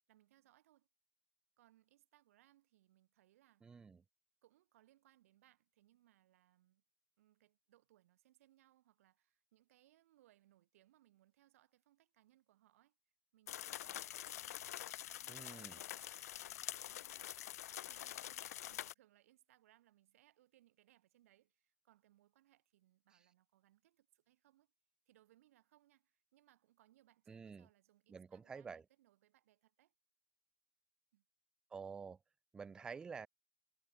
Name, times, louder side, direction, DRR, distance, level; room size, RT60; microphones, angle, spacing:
voice 1, 0.1-0.9 1.6-3.7 4.4-6.8 7.2-13.0 13.3-16.0 16.3-17.2 17.9-24.7 25.1-29.9 31.1-31.2, right 14 dB, 65° right, 1.9 m, -72 dB
voice 2, 3.6-4.0 15.3-15.8 27.3-27.7 28.1-28.8 31.7-32.2 32.5-33.3, right 5 dB, 10° right, 0.5 m, -49 dB
sound 1, 13.5-18.9, left 12 dB, 85° left, 0.5 m, -46 dB
supercardioid pair, 155°, 8 cm